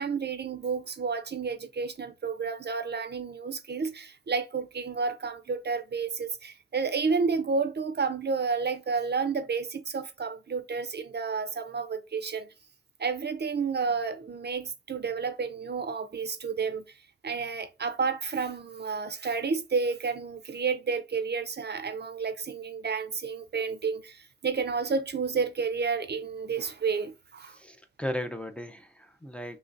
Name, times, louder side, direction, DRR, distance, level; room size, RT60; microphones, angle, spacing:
voice 1, 0.0-12.5 13.0-16.8 17.2-27.6, right 5 dB, 55° right, 0.5 m, -31 dB
voice 2, 27.4-29.6, left 1 dB, 5° left, 0.5 m, -36 dB
3.8 x 3.0 x 2.5 m
wide cardioid pair, 80°, 21 cm